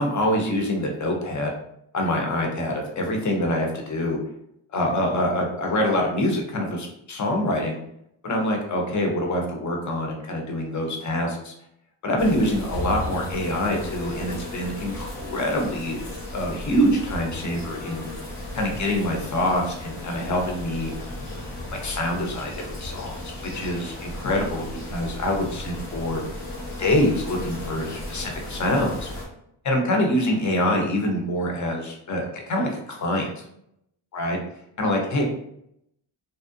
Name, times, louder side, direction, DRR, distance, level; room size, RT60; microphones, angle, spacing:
voice 1, 0.0-1.5 1.9-4.2 4.7-7.8 8.2-11.5 12.0-16.0 16.3-18.1 18.5-20.9 21.8-26.2 26.8-29.1 29.6-33.4 34.1-34.4 34.8-35.2, left 1 dB, 35° left, 1 dB, 0.7 m, -25 dB
sound 1, 12.2-29.2, left 1 dB, 80° left, 0.9 m, -35 dB
2.5 x 2.0 x 2.5 m, 0.75 s
cardioid pair, 85°, 48 cm